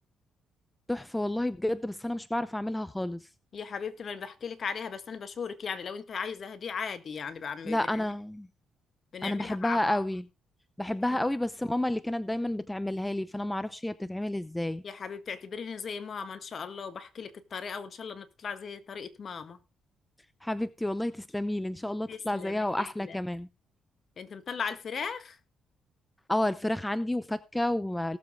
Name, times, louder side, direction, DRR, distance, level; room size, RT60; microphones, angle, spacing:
voice 1, 0.9-3.2 7.7-8.5 9.2-10.2 10.8-14.8 20.4-23.5 26.3-28.2, left 1 dB, 10° left, 0.7 m, -30 dB
voice 2, 3.5-8.0 9.1-10.0 14.8-19.6 22.1-23.2 24.2-25.4, left 6 dB, 50° left, 1.5 m, -37 dB
18.0 x 7.4 x 3.5 m
cardioid pair, 90°, 0 cm